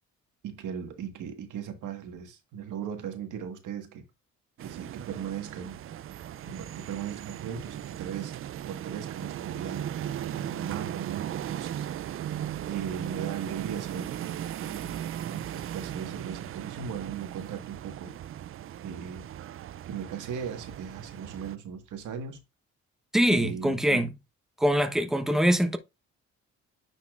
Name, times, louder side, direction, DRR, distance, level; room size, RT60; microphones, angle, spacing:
voice 1, 0.4-4.0 4.6-5.8 6.4-8.3 8.7-11.9 12.6-15.0 15.3-18.1 18.8-19.2 19.9-22.4 23.2-24.1, right 7 dB, 80° right, 1.6 m, -38 dB
sound 1, 4.6-21.6, right 11 dB, 45° right, 0.4 m, -37 dB
voice 2, 23.1-24.1 24.6-25.8, equal, ahead, 0.9 m, -23 dB
9.4 x 4.2 x 2.4 m
cardioid pair, 90°, 30 cm